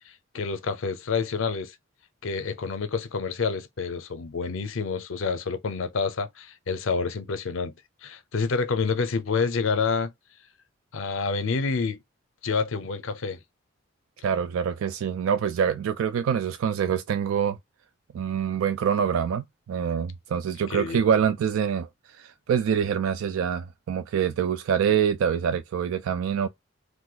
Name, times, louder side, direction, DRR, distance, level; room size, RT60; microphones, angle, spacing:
voice 1, 0.3-1.7 2.2-7.7 8.0-10.1 10.9-12.0 12.4-13.4 20.7-21.0, left 4 dB, 75° left, 0.6 m, -28 dB
voice 2, 14.2-17.6 18.1-26.5, right 8 dB, 85° right, 0.3 m, -25 dB
2.6 x 2.2 x 3.8 m
head